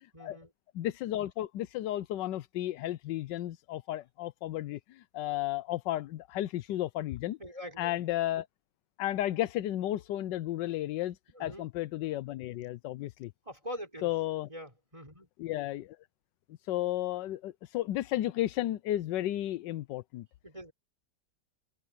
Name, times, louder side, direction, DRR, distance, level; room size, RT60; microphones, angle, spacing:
voice 1, 0.1-0.5 7.4-8.0 11.3-11.7 13.4-14.1 14.5-15.3 20.4-20.7, equal, 20° right, 4.8 m, -43 dB
voice 2, 0.7-7.4 7.8-8.5 9.0-13.3 14.0-14.5 15.4-16.0 16.6-20.2, left 14 dB, 85° left, 1.3 m, -33 dB
omnidirectional pair, 1.9 m